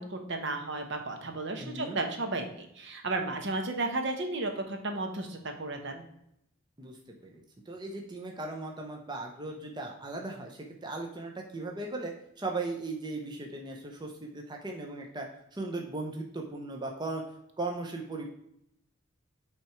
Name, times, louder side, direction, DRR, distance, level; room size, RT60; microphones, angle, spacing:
voice 1, 0.0-6.1, right 2 dB, 60° right, 4 dB, 1.0 m, -33 dB
voice 2, 1.6-2.0 6.8-7.0 7.2-17.2 17.6-18.3, right 2 dB, 20° right, 1 dB, 0.7 m, -37 dB
8.5 x 3.5 x 4.4 m, 0.75 s
head